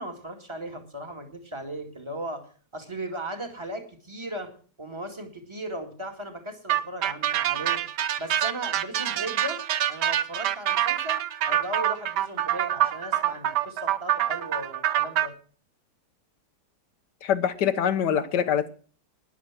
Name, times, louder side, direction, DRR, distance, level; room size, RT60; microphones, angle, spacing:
voice 1, 0.0-4.5 4.8-7.8 8.2-9.6 9.9-15.3, right 1 dB, 15° right, 2.0 m, -37 dB
sound 1, 6.7-15.3, right 11 dB, 80° right, 1.4 m, -26 dB
voice 2, 17.2-18.7, left 9 dB, 75° left, 1.6 m, -24 dB
12.0 x 10.5 x 6.0 m
omnidirectional pair, 1.8 m